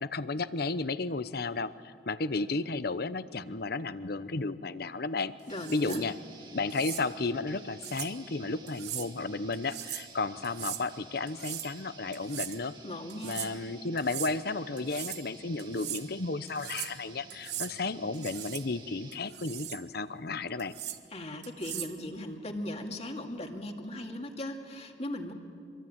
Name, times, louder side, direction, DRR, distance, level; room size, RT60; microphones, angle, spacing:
voice 1, 0.0-5.3 5.7-6.1 6.5-12.7 13.2-20.7, left 3 dB, 60° left, 14 dB, 0.9 m, -33 dB
voice 2, 5.5-6.0 12.8-13.4 21.1-25.3, left 1 dB, 35° left, 3 dB, 2.4 m, -38 dB
sound 1, 5.5-19.2, right 3 dB, 25° right, 2.1 m, -52 dB
sound 2, 5.5-6.0 6.7-7.0 7.8-8.1 8.7-9.1 9.5-10.1 10.4-10.8 11.3-11.7 12.1-12.6 13.1-13.5 14.0-14.3 14.8-15.3 15.6-16.0 16.5-17.0 17.3-17.7 18.1-18.6 19.1-19.8 20.6-21.0 21.4-22.0, right 12 dB, 65° right, 1.2 m, -39 dB
26.5 x 23.5 x 8.8 m, 2.2 s
head